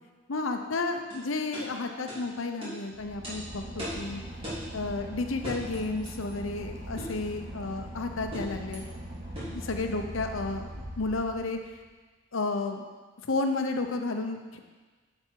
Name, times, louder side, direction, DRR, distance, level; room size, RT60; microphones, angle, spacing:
voice 1, 0.3-4.2 4.7-8.8 9.4-11.6 12.3-12.8 13.2-14.6, left 3 dB, 75° left, 5 dB, 0.8 m, -32 dB
sound 1, 1.1-1.2 1.5-1.7 2.1-2.2 2.6-2.8 3.2-3.4 3.8-4.0 4.4-4.7 5.4-5.7 7.0-7.2 8.3-8.6 9.4-9.6, equal, 25° right, 3.0 m, -37 dB
Boat Water vehicle / Engine, 2.9-11.8, equal, 60° right, 1.8 m, -41 dB
7.8 x 7.1 x 4.6 m, 1.3 s
head